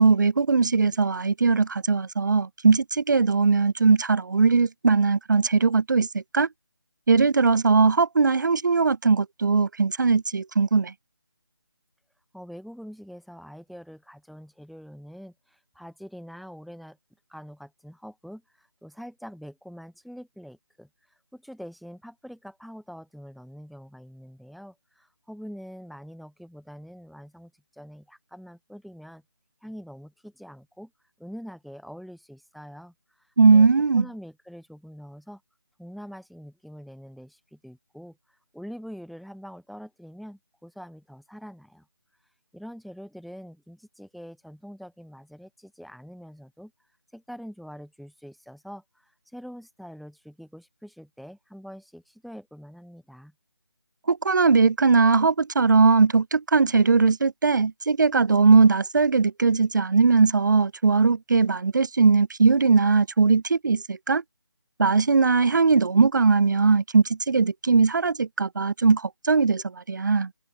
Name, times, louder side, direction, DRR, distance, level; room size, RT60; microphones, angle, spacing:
voice 1, 0.0-6.5 7.1-10.9 33.4-34.0 54.1-64.2 64.8-70.3, right 4 dB, 45° right, 2.2 m, -20 dB
voice 2, 12.3-17.0 17.3-29.2 29.6-30.9 31.2-33.7 33.9-35.4 35.8-41.9 42.5-46.7 47.1-53.3, equal, ahead, 4.2 m, -44 dB
open air
figure-of-eight pair, 170°, 14 cm